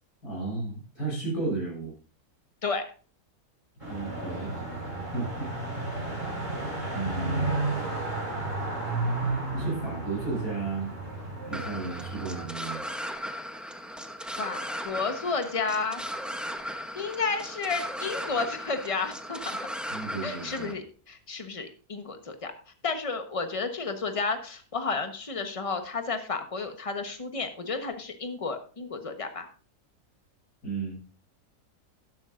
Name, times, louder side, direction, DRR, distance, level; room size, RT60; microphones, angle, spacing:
voice 1, 0.2-1.9 3.9-4.7 5.1-5.5 6.9-7.5 8.8-9.0 9.5-10.9 11.5-12.9 19.9-20.8 30.6-31.0, right 3 dB, 80° left, -3 dB, 7.0 m, -34 dB
sound 1, 3.8-12.5, right 2 dB, 20° right, 6.0 m, -32 dB
sound 2, 11.5-20.7, equal, ahead, 0.4 m, -37 dB
voice 2, 14.4-16.0 16.9-19.6 20.2-22.5 22.8-29.5, left 4 dB, 25° left, 7 dB, 1.1 m, -32 dB
12.5 x 11.0 x 2.5 m, 0.38 s
omnidirectional pair, 1.6 m